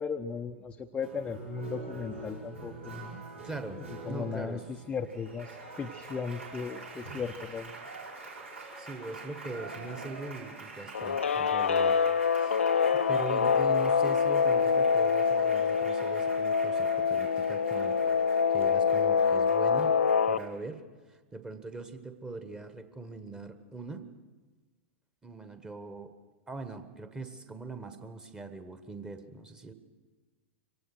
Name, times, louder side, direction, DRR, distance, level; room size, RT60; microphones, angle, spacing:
voice 1, 0.0-3.2 3.7-7.9, left 5 dB, 15° left, 3 dB, 0.7 m, -37 dB
Applause, 1.0-20.7, right 2 dB, 75° right, 5.1 m, -45 dB
voice 2, 3.4-3.8 4.1-4.6 8.8-12.0 12.4-12.6 12.9-18.1 18.5-20.0 20.3-24.1 25.2-26.1 26.5-29.7, right 3 dB, 10° right, 9 dB, 1.4 m, -41 dB
Guitar, 10.9-20.4, left 6 dB, 70° left, 0.7 m, -25 dB
24.0 x 18.0 x 6.3 m, 1.3 s
figure-of-eight pair, 95°, 7 cm